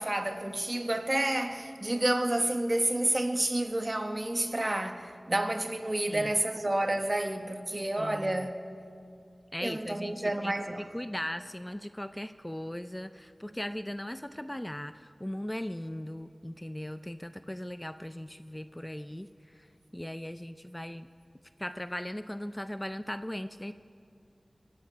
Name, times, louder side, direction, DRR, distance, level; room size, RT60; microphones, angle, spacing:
voice 1, 0.0-8.6 9.6-10.9, right 1 dB, 35° right, 1.1 m, -30 dB
voice 2, 8.0-8.5 9.5-19.7 19.9-21.1 21.6-23.7, left 1 dB, 15° left, 0.4 m, -38 dB
24.0 x 9.6 x 5.8 m
wide cardioid pair, 50°, 0 cm